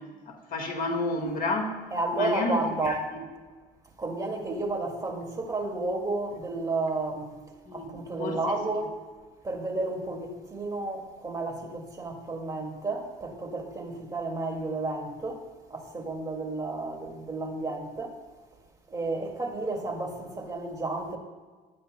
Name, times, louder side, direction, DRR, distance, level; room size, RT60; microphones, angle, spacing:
voice 1, 0.0-1.8 2.1-3.2 7.7-8.6, left 2 dB, 55° left, 1.8 m, -31 dB
voice 2, 1.9-3.1 4.0-7.4 7.7-8.9 9.4-15.4 15.7-18.2 18.9-21.2, right 2 dB, 20° right, 2.2 m, -32 dB
19.5 x 12.0 x 2.2 m
cardioid pair, 110°, 17 cm